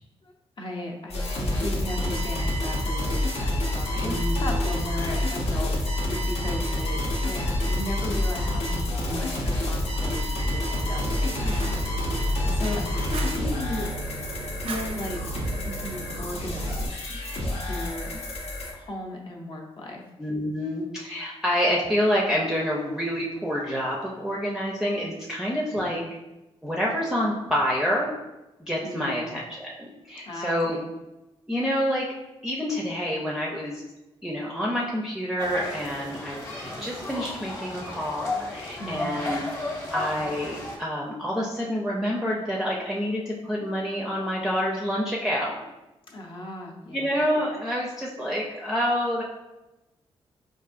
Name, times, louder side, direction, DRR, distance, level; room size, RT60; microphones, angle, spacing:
voice 1, 0.2-13.9 14.4-15.2 15.7-17.2 17.4-18.2 18.7-20.0 25.7-26.1 28.8-29.4 30.3-30.9 38.8-39.4 46.1-47.1, left 1 dB, 55° left, 0 dB, 0.7 m, -36 dB
sound 1, 1.1-18.7, left 1 dB, 85° left, 0.8 m, -28 dB
voice 2, 4.1-4.7 7.7-7.8 12.4-13.0 13.4-13.5 20.2-26.0 26.6-28.1 28.6-30.8 31.5-32.1 32.4-33.8 34.2-39.4 39.9-45.6 46.9-49.2, equal, 5° right, -4 dB, 0.5 m, -28 dB
Fire, 10.7-16.9, right 4 dB, 65° right, 0.5 m, -36 dB
sound 2, 35.4-40.8, left 2 dB, 25° left, 0.9 m, -34 dB
4.6 x 2.5 x 2.5 m, 1.0 s
cardioid pair, 100°, 10 cm